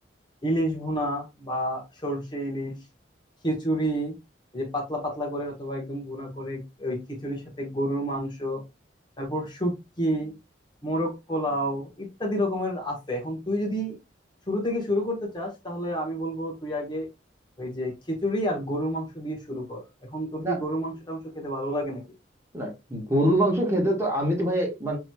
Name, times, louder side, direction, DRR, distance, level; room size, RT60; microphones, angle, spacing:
voice 1, 0.4-2.8 3.4-4.2 4.5-8.6 9.2-10.3 10.8-14.0 14.5-17.1 17.6-22.0, equal, 25° left, 1.2 m, -29 dB
voice 2, 22.5-25.0, right 1 dB, 15° right, 1.3 m, -24 dB
5.9 x 3.0 x 2.2 m
head